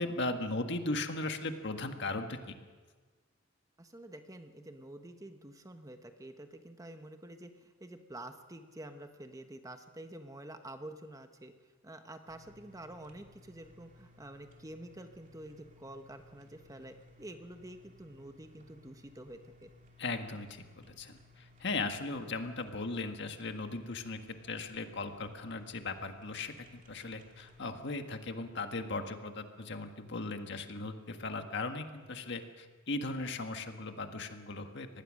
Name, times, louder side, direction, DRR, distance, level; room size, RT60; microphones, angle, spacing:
voice 1, 0.0-2.4 20.0-34.9, left 3 dB, 60° left, 6 dB, 1.6 m, -37 dB
voice 2, 3.8-11.5 11.8-19.7, right 1 dB, 15° right, 7 dB, 1.0 m, -48 dB
sound 1, 12.3-27.9, left 1 dB, 40° right, 2.6 m, -60 dB
25.0 x 19.0 x 6.4 m, 1.4 s
head